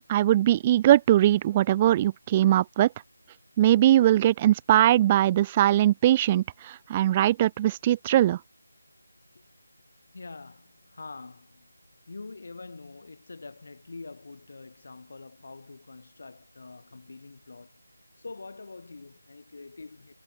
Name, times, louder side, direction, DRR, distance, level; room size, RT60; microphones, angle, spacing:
voice 1, 0.1-2.9 3.6-8.4, right 13 dB, 15° right, 0.4 m, -21 dB
voice 2, 10.1-11.7 12.1-17.8 18.2-20.1, left 3 dB, 50° left, 7.0 m, -45 dB
figure-of-eight pair, 165°, 0 cm